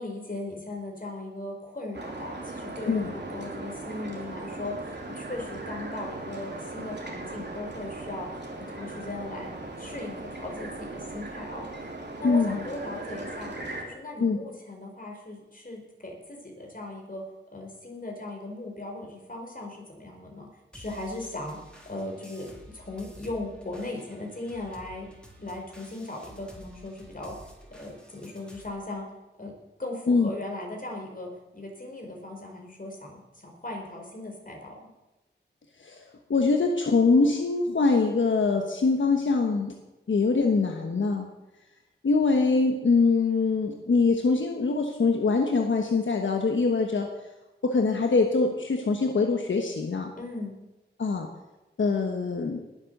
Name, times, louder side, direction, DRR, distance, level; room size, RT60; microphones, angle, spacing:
voice 1, 0.0-8.3 8.6-11.6 12.2-13.5 13.8-17.2 17.5-20.5 20.7-21.6 21.8-22.5 22.7-25.1 25.4-27.4 27.8-29.1 29.4-29.5 29.8-34.9 50.2-50.5, left 2 dB, 45° left, 0 dB, 4.6 m, -38 dB
sound 1, 1.9-13.8, right 2 dB, 65° right, 2.8 m, -38 dB
voice 2, 12.2-12.6 14.2-14.4 30.1-30.3 35.8-39.7 40.1-41.3 42.0-47.1 47.6-50.1 51.0-51.3 51.8-52.6, left 4 dB, 85° left, 3 dB, 1.2 m, -23 dB
sound 2, 20.7-28.7, equal, 5° left, 3.8 m, -51 dB
20.0 x 7.5 x 6.7 m, 1.0 s
cardioid pair, 50°, 19 cm